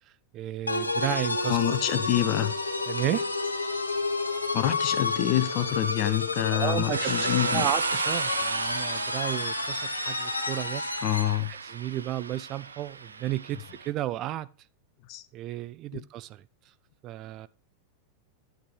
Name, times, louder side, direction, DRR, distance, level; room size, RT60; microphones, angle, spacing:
voice 1, 0.3-1.6 2.9-3.3 6.5-10.8 11.5-14.5 15.3-16.4 17.0-17.5, right 14 dB, 35° right, 0.4 m, -33 dB
sound 1, 0.7-11.4, left 3 dB, 80° left, 0.9 m, -30 dB
voice 2, 1.5-2.5 4.5-7.6 11.0-11.5 15.1-15.2 15.9-16.0, left 14 dB, 40° left, 0.8 m, -27 dB
sound 2, 6.9-13.9, right 5 dB, 75° right, 0.6 m, -34 dB
11.0 x 8.1 x 3.2 m
figure-of-eight pair, 90°, 0 cm